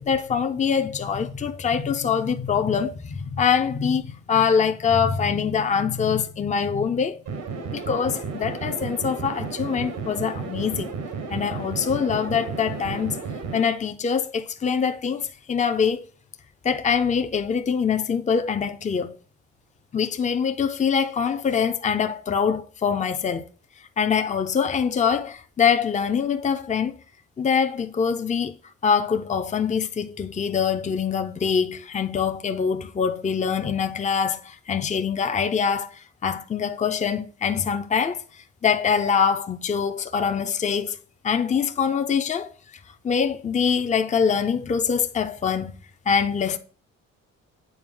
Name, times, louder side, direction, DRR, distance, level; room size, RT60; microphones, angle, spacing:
voice 1, 0.0-7.2 7.7-10.9 11.3-13.2 13.5-16.0 16.6-19.2 19.9-23.4 24.0-26.9 27.4-28.6 28.8-35.9 36.2-38.2 38.6-41.0 41.2-42.5 43.0-45.7 46.1-46.6, left 6 dB, 25° left, 0.6 m, -24 dB
sound 1, 7.3-13.6, right 4 dB, 85° right, 1.5 m, -32 dB
7.8 x 4.3 x 3.8 m
cardioid pair, 90°, 30 cm